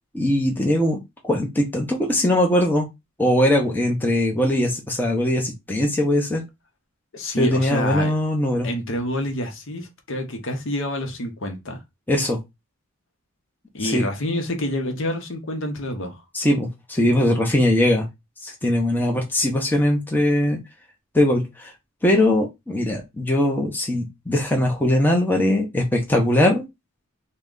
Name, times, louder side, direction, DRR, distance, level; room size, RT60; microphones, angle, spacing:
voice 1, 0.1-2.9 3.2-6.4 7.4-8.7 12.1-12.4 13.8-14.1 16.3-18.1 18.4-20.6 21.1-21.7 22.0-26.6, left 1 dB, 10° left, 0.7 m, -21 dB
voice 2, 7.1-8.1 8.6-11.8 13.7-16.2, left 1 dB, 60° left, 0.8 m, -28 dB
3.6 x 2.2 x 3.7 m
head